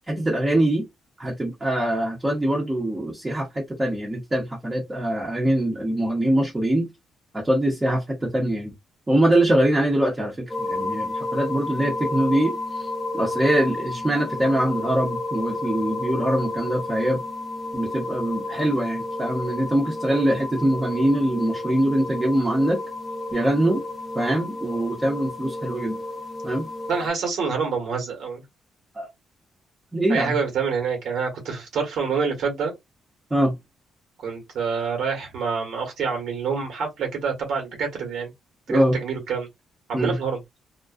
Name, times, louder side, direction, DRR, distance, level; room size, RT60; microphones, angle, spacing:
voice 1, 0.1-0.9 1.2-6.9 7.3-8.7 9.1-17.2 17.7-22.8 23.3-23.8 24.1-26.0 26.4-26.7 29.0-29.1 29.9-30.4 33.3-33.5 38.7-39.0 39.9-40.2, right 1 dB, 15° right, 0.8 m, -23 dB
sound 1, 10.5-27.1, left 2 dB, 15° left, 0.7 m, -31 dB
voice 2, 26.9-28.4 30.1-32.7 34.2-38.3 38.7-39.5 39.9-40.4, right 5 dB, 75° right, 1.2 m, -27 dB
2.4 x 2.2 x 2.4 m
cardioid pair, 90°, 0 cm